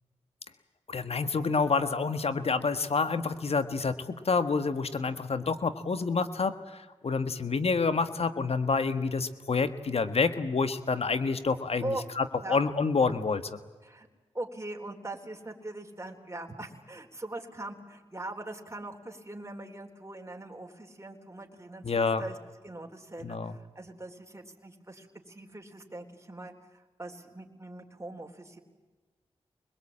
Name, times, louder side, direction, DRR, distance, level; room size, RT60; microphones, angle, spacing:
voice 1, 0.9-6.8 7.0-13.6 21.8-22.2 23.2-23.5, left 4 dB, 65° left, 11 dB, 1.6 m, -28 dB
voice 2, 14.3-21.8 22.2-22.4 22.6-26.5 27.0-28.6, right 2 dB, 25° right, 1 dB, 4.0 m, -41 dB
25.5 x 21.5 x 8.8 m, 1.3 s
cardioid pair, 45°, 11 cm